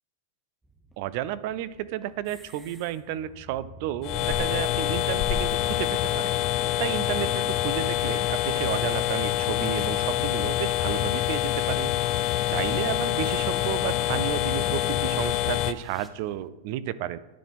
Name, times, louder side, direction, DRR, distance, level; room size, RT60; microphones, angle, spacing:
sound 1, 0.6-16.5, right 1 dB, 10° right, 0.6 m, -50 dB
voice 1, 1.0-6.4 6.8-17.2, right 12 dB, 55° right, 16 dB, 0.4 m, -32 dB
sound 2, 4.0-15.7, left 14 dB, 45° left, 0.3 m, -26 dB
10.0 x 4.1 x 3.6 m, 1.0 s
hypercardioid pair, 125°, 0 cm